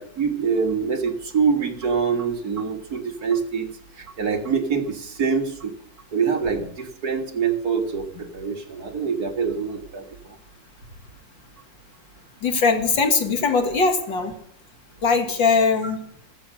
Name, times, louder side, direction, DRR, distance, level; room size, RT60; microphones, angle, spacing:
voice 1, 0.0-3.7 4.0-5.8 6.1-10.1, right 6 dB, 55° right, 4 dB, 2.1 m, -25 dB
voice 2, 12.4-14.3 15.0-16.0, left 4 dB, 75° left, 5 dB, 2.8 m, -20 dB
15.0 x 14.0 x 6.5 m, 0.66 s
omnidirectional pair, 2.0 m